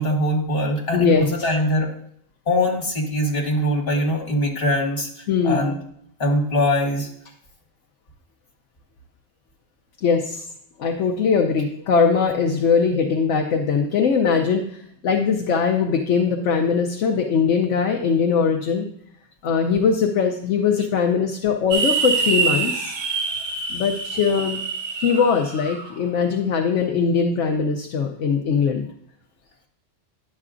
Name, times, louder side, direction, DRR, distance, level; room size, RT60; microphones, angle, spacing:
voice 1, 0.0-1.9 2.5-5.1 5.4-5.8 6.2-7.1, left 1 dB, 50° left, -1 dB, 2.0 m, -22 dB
voice 2, 0.9-1.3 5.3-5.7 10.0-10.4 10.8-18.9 19.4-22.9 23.7-24.6 25.0-28.9, left 6 dB, 75° left, 3 dB, 1.0 m, -21 dB
sound 1, 21.7-25.9, right 5 dB, 90° right, 1.7 m, -25 dB
11.0 x 7.5 x 2.5 m, 0.69 s
omnidirectional pair, 1.3 m